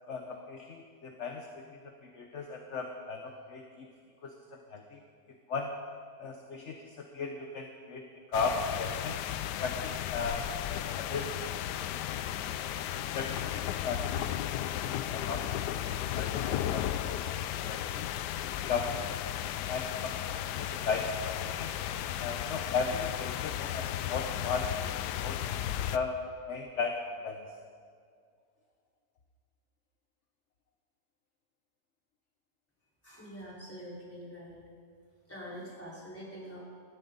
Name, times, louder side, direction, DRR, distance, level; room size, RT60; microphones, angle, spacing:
voice 1, 0.1-3.9 4.2-5.0 5.5-5.7 6.2-9.2 9.6-10.4 10.7-11.3 13.1-18.1 18.7-19.2 19.7-20.1 20.5-21.7 22.2-25.4 25.7-26.1 26.5-27.0 27.2-27.5, left 4 dB, 50° left, 3 dB, 1.1 m, -37 dB
sound 1, 8.3-26.0, left 11 dB, 80° left, 1.2 m, -34 dB
voice 2, 33.0-34.6 35.3-36.6, equal, 10° left, -7 dB, 4.7 m, -45 dB
20.0 x 13.5 x 4.0 m, 2.2 s
omnidirectional pair, 1.8 m